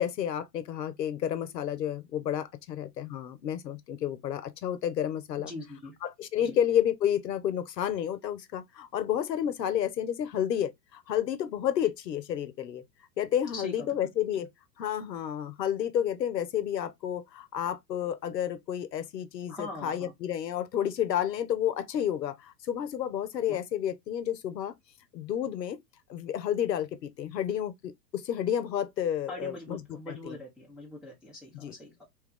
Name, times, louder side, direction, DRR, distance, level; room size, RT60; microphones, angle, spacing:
voice 1, 0.0-5.5 6.0-12.8 13.2-14.5 14.8-24.7 25.1-25.8 26.1-30.4 31.5-31.7, left 10 dB, 80° left, 0.7 m, -31 dB
voice 2, 5.4-5.9 6.4-6.6 13.5-14.0 19.5-20.1 23.5-23.6 29.3-32.0, left 1 dB, ahead, 0.5 m, -42 dB
2.9 x 2.3 x 3.6 m
hypercardioid pair, 105°, 50 cm